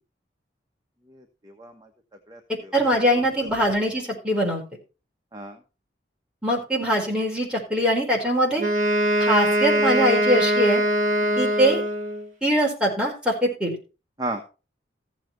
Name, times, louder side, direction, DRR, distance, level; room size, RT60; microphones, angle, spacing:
voice 1, 1.1-1.9 2.3-2.9 3.4-3.5 5.3-5.6 11.2-11.4 14.2-14.4, right 1 dB, 20° right, 3 dB, 1.2 m, -35 dB
voice 2, 2.7-4.6 6.4-8.6 9.2-10.8 11.4-11.8 12.4-13.8, equal, 5° right, -2 dB, 4.5 m, -22 dB
Wind instrument woodwind instrument, 8.6-12.3, equal, 45° right, 2.4 m, -22 dB
15.0 x 7.5 x 4.5 m, 0.32 s
head